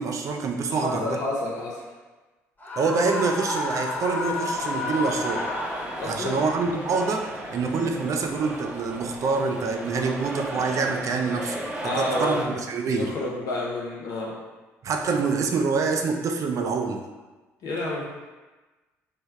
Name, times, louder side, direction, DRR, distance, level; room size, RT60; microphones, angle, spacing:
voice 1, 0.0-1.2 2.8-5.4 6.0-13.1 14.8-17.0, right 4 dB, 45° right, 4 dB, 0.5 m, -26 dB
voice 2, 0.7-1.9 6.0-6.4 11.8-12.5 12.9-14.4 17.6-18.1, left 2 dB, 55° left, -4 dB, 0.6 m, -30 dB
Screaming, 2.6-6.3, left 3 dB, 20° left, 0.8 m, -31 dB
sound 1, 3.5-12.5, right 1 dB, 15° right, 0.8 m, -35 dB
3.2 x 2.2 x 4.3 m, 1.2 s
figure-of-eight pair, 50°, 8 cm